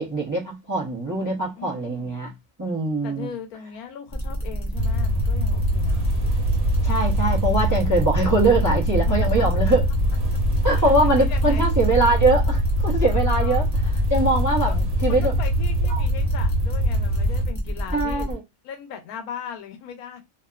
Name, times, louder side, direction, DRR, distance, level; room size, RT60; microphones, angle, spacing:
voice 1, 0.0-2.3 2.6-3.3 6.8-9.8 10.6-15.3 15.9-16.0 17.9-18.4, right 2 dB, 25° right, 0.4 m, -22 dB
voice 2, 1.2-2.2 3.0-6.1 9.2-9.3 10.7-11.6 13.1-13.6 14.6-14.8 15.1-18.3 18.6-20.2, left 7 dB, 85° left, 1.1 m, -38 dB
sound 1, 4.1-18.3, equal, 15° left, 0.6 m, -29 dB
sound 2, 4.8-17.5, equal, 85° right, 1.2 m, -23 dB
2.6 x 2.4 x 2.3 m
omnidirectional pair, 1.5 m